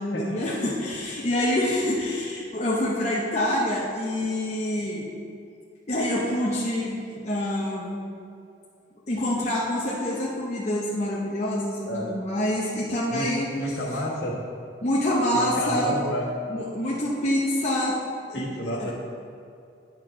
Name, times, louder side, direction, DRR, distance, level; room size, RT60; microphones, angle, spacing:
voice 1, 0.0-5.1 5.9-8.1 9.1-13.6 14.8-16.0 16.5-18.4 18.8-18.9, left 1 dB, 40° left, -4 dB, 0.8 m, -26 dB
voice 2, 13.6-14.4 15.3-16.3 18.3-18.9, equal, 65° left, -3 dB, 1.4 m, -29 dB
8.7 x 4.4 x 5.7 m, 2.5 s
head